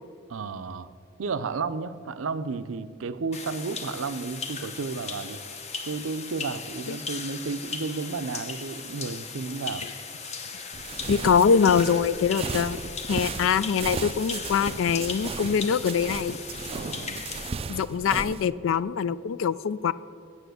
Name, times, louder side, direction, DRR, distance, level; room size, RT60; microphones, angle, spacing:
voice 1, 0.3-0.9 1.2-5.4 5.8-9.9 16.7-17.2, right 4 dB, 85° right, 13 dB, 0.5 m, -32 dB
sound 1, 3.3-17.5, left 5 dB, 35° left, 0.8 m, -38 dB
sound 2, 10.7-18.5, right 4 dB, 30° right, 0.4 m, -35 dB
voice 2, 11.1-12.8 13.1-16.4 17.7-19.9, left 6 dB, 75° left, 17 dB, 0.4 m, -23 dB
9.2 x 7.2 x 7.9 m, 2.4 s
head